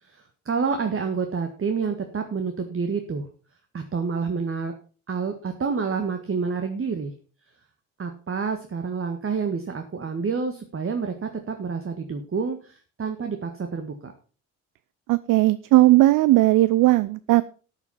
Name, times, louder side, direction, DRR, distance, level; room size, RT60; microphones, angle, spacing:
voice 1, 0.0-3.3 3.7-4.7 5.1-7.1 8.0-14.1, right 5 dB, 30° right, 6 dB, 1.7 m, -28 dB
voice 2, 15.1-17.4, right 17 dB, 50° right, 17 dB, 0.6 m, -17 dB
13.0 x 7.4 x 5.7 m, 0.38 s
figure-of-eight pair, 45°, 42 cm